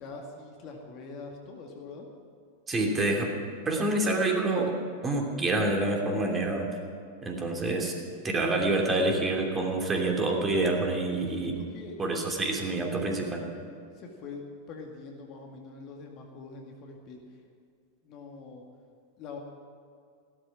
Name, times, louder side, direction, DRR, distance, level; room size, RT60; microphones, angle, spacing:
voice 1, 0.0-2.1 11.4-13.2 13.9-17.2 18.0-18.6 19.2-19.4, left 4 dB, 40° left, 1 dB, 2.2 m, -44 dB
voice 2, 2.7-3.3 3.6-4.7 5.0-6.7 7.2-7.9 8.2-11.5 12.0-13.4, right 2 dB, 20° right, 1 dB, 2.9 m, -27 dB
16.0 x 13.0 x 6.0 m, 2.4 s
figure-of-eight pair, 90°, 0 cm